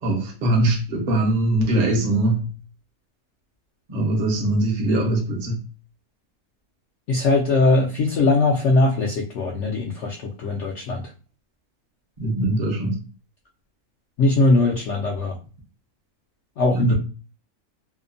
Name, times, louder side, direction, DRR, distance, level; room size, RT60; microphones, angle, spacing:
voice 1, 0.0-2.5 3.9-5.6 12.2-13.0 16.7-17.0, right 2 dB, 40° right, 0.7 m, -22 dB
voice 2, 7.1-11.0 14.2-15.4 16.6-17.0, left 2 dB, 65° left, 0.8 m, -20 dB
2.8 x 2.1 x 2.5 m
omnidirectional pair, 1.6 m